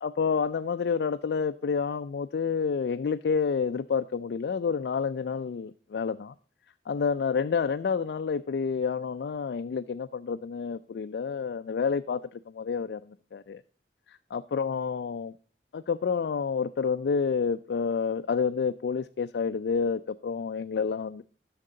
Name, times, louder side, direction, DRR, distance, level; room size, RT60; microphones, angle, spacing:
voice 1, 0.0-6.3 6.9-13.6 14.3-15.3 15.7-21.2, left 5 dB, 70° left, 0.3 m, -29 dB
11.0 x 6.6 x 3.8 m
head